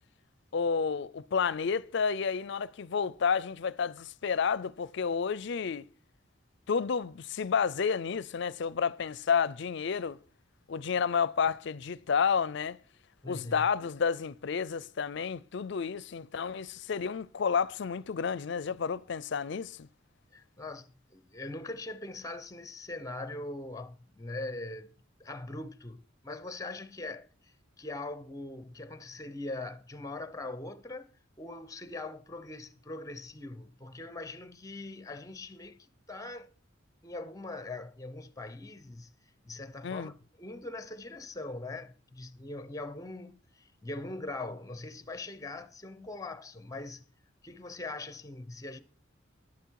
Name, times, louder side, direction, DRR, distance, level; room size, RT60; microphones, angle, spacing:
voice 1, 0.5-5.9 6.7-10.2 10.7-12.8 13.3-19.9 39.8-40.1, left 6 dB, 65° left, 0.5 m, -30 dB
voice 2, 13.2-13.7 20.3-24.9 25.2-36.5 37.0-39.1 39.4-47.1 47.4-48.8, left 2 dB, 20° left, 0.7 m, -41 dB
11.0 x 10.5 x 4.7 m
head